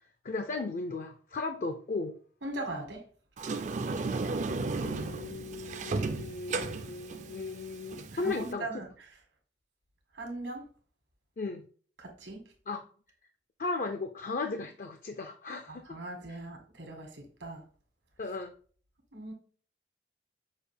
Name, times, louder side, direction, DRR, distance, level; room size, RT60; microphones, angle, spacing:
voice 1, 0.2-2.2 4.1-4.2 4.8-8.7 11.4-11.6 12.7-12.8 13.6-16.0 18.2-18.5, left 3 dB, 45° left, 0.4 m, -36 dB
voice 2, 2.4-3.1 3.4-3.6 4.8-5.0 8.1-9.2 10.1-10.7 12.0-12.5 15.7-17.6 19.1-19.3, right 2 dB, 80° right, 1.6 m, -40 dB
Sliding door, 3.4-8.5, right 3 dB, 40° right, 0.4 m, -34 dB
6.5 x 2.5 x 3.2 m
head